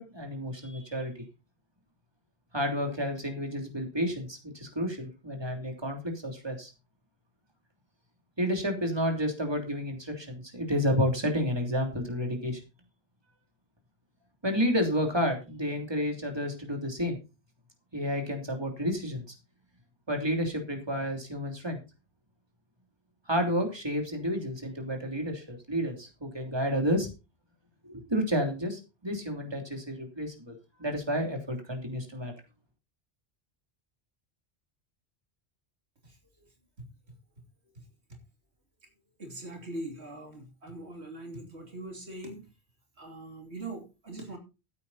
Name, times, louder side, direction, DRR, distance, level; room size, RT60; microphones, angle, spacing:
voice 1, 0.1-1.1 2.5-6.7 8.4-12.6 14.4-17.1 17.9-19.2 20.1-21.8 23.3-27.1 27.8-30.5 30.8-32.3, equal, 25° right, 3 dB, 3.2 m, -30 dB
voice 2, 36.0-36.5 36.8-37.2 38.1-38.2 39.2-42.5 43.0-44.4, right 2 dB, 80° right, 3 dB, 3.3 m, -42 dB
15.0 x 8.5 x 4.1 m, 0.29 s
omnidirectional pair, 1.1 m